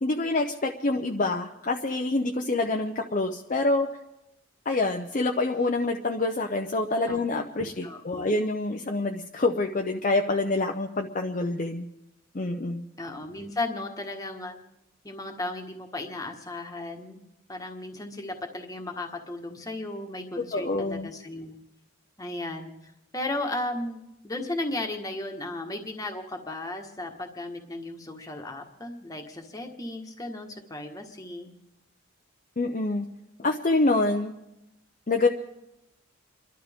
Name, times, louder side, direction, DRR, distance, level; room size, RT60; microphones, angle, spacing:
voice 1, 0.0-3.9 4.7-11.9 12.3-12.9 20.4-21.1 32.6-33.1 33.4-34.3 35.1-35.3, left 2 dB, 40° left, 3 dB, 0.7 m, -26 dB
voice 2, 7.6-8.4 13.0-14.5 15.0-17.2 17.5-21.6 22.2-31.5, left 2 dB, 15° left, 3 dB, 1.5 m, -35 dB
30.0 x 12.0 x 3.6 m, 0.92 s
head